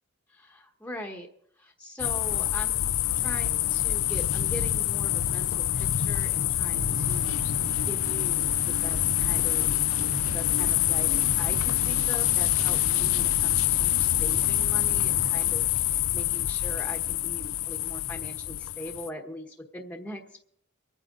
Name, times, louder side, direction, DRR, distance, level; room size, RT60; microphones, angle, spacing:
voice 1, 0.3-1.3 1.6-9.7 10.2-20.4, equal, 5° left, 2 dB, 1.2 m, -41 dB
sound 1, 2.0-19.1, left 13 dB, 75° left, 0.5 m, -26 dB
sound 2, 6.7-15.4, right 4 dB, 65° right, 0.4 m, -38 dB
24.5 x 9.1 x 3.8 m, 0.70 s
head